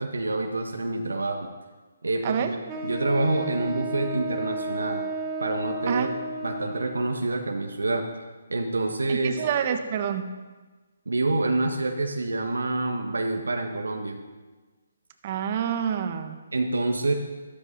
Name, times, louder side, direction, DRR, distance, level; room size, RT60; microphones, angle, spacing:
voice 1, 0.0-1.5 2.0-2.4 2.8-5.0 5.4-6.1 6.4-8.1 8.5-9.3 11.1-14.2 16.5-17.1, right 2 dB, 90° right, 3 dB, 1.7 m, -27 dB
voice 2, 2.2-2.6 5.9-6.1 9.1-10.3 15.2-16.4, right 8 dB, 40° right, 7 dB, 1.3 m, -27 dB
Wind instrument woodwind instrument, 2.7-7.1, right 2 dB, 20° right, 2.0 m, -33 dB
13.5 x 13.5 x 5.5 m, 1.3 s
hypercardioid pair, 150°, 0 cm